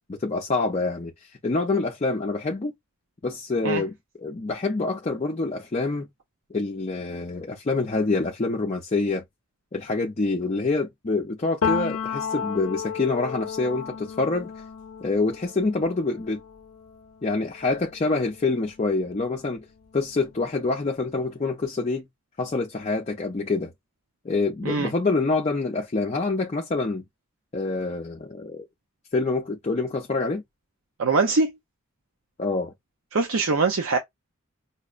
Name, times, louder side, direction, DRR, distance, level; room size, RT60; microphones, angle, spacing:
voice 1, 0.1-2.7 3.2-6.1 6.5-9.2 9.7-14.5 15.0-16.4 17.2-19.6 19.9-22.0 22.4-23.7 24.2-27.0 27.5-28.7 29.1-30.4 32.4-32.7, left 3 dB, 30° left, 0.4 m, -26 dB
Piano, 11.6-19.2 19.6-21.1, left 7 dB, 80° left, 0.5 m, -34 dB
voice 2, 31.0-31.5 33.1-34.0, right 3 dB, 75° right, 0.6 m, -22 dB
5.5 x 2.0 x 2.4 m
head